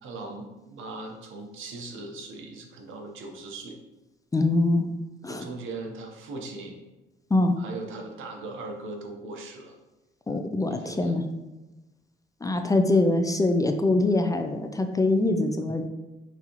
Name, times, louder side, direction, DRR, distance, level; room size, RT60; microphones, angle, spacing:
voice 1, 0.0-3.8 5.3-6.8 7.6-9.7 10.7-11.1, right 3 dB, 85° right, 2 dB, 0.8 m, -39 dB
voice 2, 4.3-4.9 5.2-5.4 7.3-7.5 10.3-11.2 12.4-15.9, left 2 dB, 15° left, 6 dB, 0.4 m, -23 dB
6.0 x 2.7 x 2.9 m, 1.1 s
cardioid pair, 90°, 20 cm